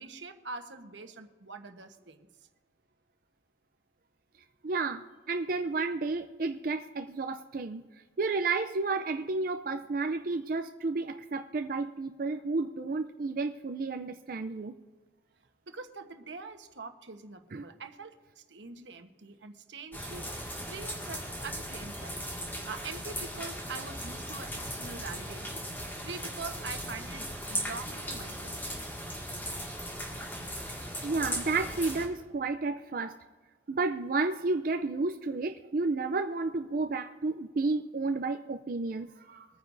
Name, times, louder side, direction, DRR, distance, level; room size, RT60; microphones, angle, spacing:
voice 1, 0.0-2.3 15.7-25.6 26.0-28.6, right 4 dB, 90° right, 6 dB, 1.2 m, -44 dB
voice 2, 4.6-7.8 8.2-14.7 17.5-17.6 30.7-33.2 33.7-39.5, right 3 dB, 50° right, 6 dB, 0.5 m, -31 dB
sound 1, 19.9-32.1, equal, 10° left, 2.0 m, -38 dB
23.5 x 9.6 x 2.6 m, 1.4 s
head